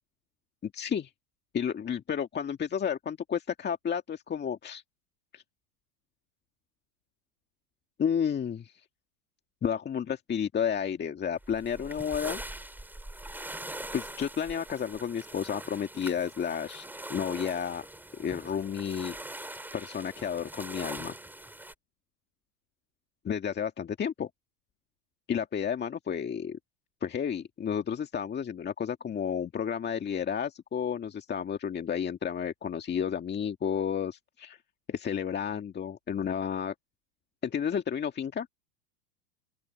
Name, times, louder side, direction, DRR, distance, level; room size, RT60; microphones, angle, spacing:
voice 1, 0.6-1.1 1.5-4.8 5.3-5.4 8.0-8.8 9.6-12.4 13.9-17.9 18.1-19.2 19.7-21.1 23.2-24.3 25.3-26.6 27.0-34.6 34.9-36.7 37.4-38.5, left 8 dB, 20° left, 2.0 m, -31 dB
sound 1, 11.4-21.7, right 1 dB, 5° right, 3.9 m, -42 dB
open air
hypercardioid pair, 115°, 47 cm